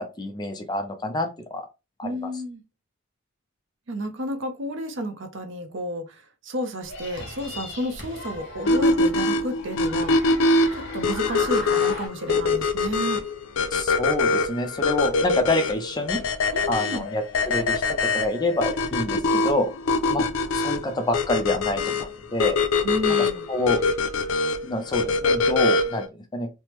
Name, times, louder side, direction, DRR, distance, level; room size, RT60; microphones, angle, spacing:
voice 1, 0.2-1.7 2.0-2.1 13.7-16.2 16.7-19.7 20.1-20.2 20.5-22.6 23.5-23.8 24.6-26.5, left 1 dB, 20° left, 0.5 m, -27 dB
voice 2, 2.0-2.6 3.9-10.4 10.7-13.2 16.5-17.1 22.8-23.5, equal, 65° right, 0.6 m, -31 dB
sound 1, 6.8-12.1, left 2 dB, 60° left, 1.0 m, -38 dB
sound 2, 8.7-26.1, left 3 dB, 85° left, 0.4 m, -23 dB
3.3 x 2.1 x 2.9 m
head